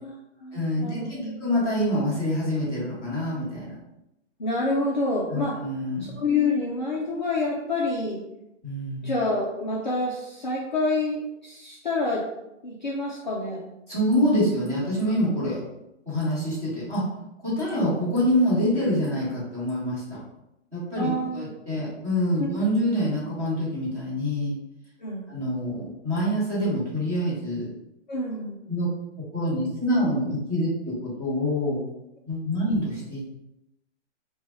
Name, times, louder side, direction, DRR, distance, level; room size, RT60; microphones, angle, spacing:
voice 1, 0.0-1.4 4.4-5.6 6.0-8.2 9.0-12.2 12.6-13.7 21.0-21.5 22.4-22.5 25.0-25.3 28.1-28.6, left 2 dB, 40° left, -4 dB, 0.4 m, -28 dB
voice 2, 0.5-3.8 5.3-6.1 8.6-9.1 13.9-15.6 16.1-17.0 17.4-20.2 20.7-24.6 25.3-27.7 28.7-28.9 29.3-31.8 32.3-33.2, equal, 5° right, -13 dB, 1.0 m, -26 dB
3.2 x 2.2 x 4.2 m, 0.89 s
hypercardioid pair, 180°, 37 cm